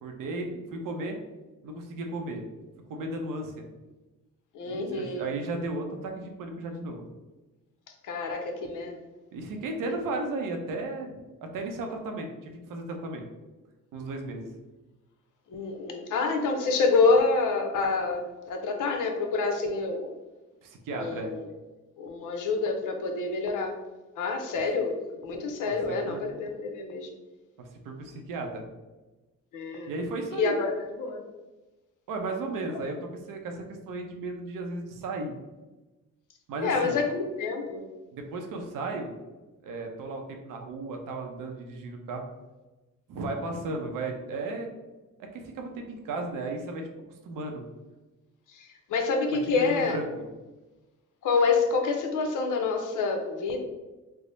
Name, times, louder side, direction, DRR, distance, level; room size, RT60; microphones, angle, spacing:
voice 1, 0.0-1.2 1.6-2.4 2.9-3.6 4.7-7.0 9.3-11.2 11.5-13.2 13.9-14.5 20.6-21.3 25.7-26.2 27.8-28.6 29.9-30.5 32.1-33.0 33.3-35.3 36.5-37.0 38.1-39.2 39.6-42.2 43.1-44.7 45.2-46.9 47.2-47.6 49.6-50.0, right 2 dB, 85° right, 3 dB, 0.7 m, -35 dB
voice 2, 4.5-5.2 8.0-9.0 15.5-20.1 21.0-21.5 22.0-23.7 24.2-27.1 29.5-29.9 30.3-31.2 36.6-37.8 48.5-50.0 51.2-53.6, left 4 dB, 75° left, 3 dB, 0.7 m, -27 dB
3.4 x 2.0 x 3.9 m, 1.1 s
cardioid pair, 100°, 32 cm